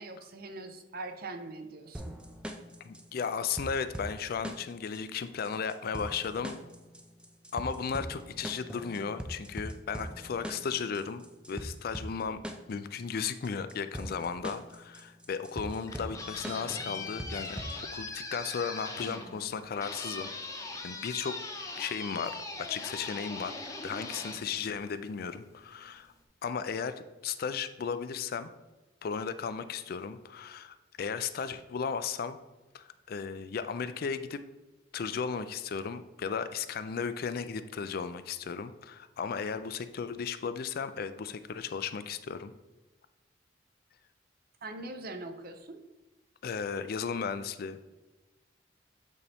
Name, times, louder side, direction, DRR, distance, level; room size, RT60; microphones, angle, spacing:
voice 1, 0.0-2.1 44.6-45.8, right 2 dB, 55° right, 7 dB, 0.7 m, -42 dB
sound 1, 1.9-17.9, equal, 5° right, 0.5 m, -42 dB
voice 2, 2.8-6.6 7.5-11.2 11.5-12.4 12.7-20.3 20.6-21.4 21.8-26.1 26.4-28.5 29.0-32.4 32.7-34.4 34.9-42.5 46.4-47.8, left 6 dB, 55° left, 11 dB, 0.4 m, -35 dB
sound 2, 15.6-25.3, left 3 dB, 20° left, 0.8 m, -41 dB
8.4 x 4.1 x 3.4 m, 1.1 s
head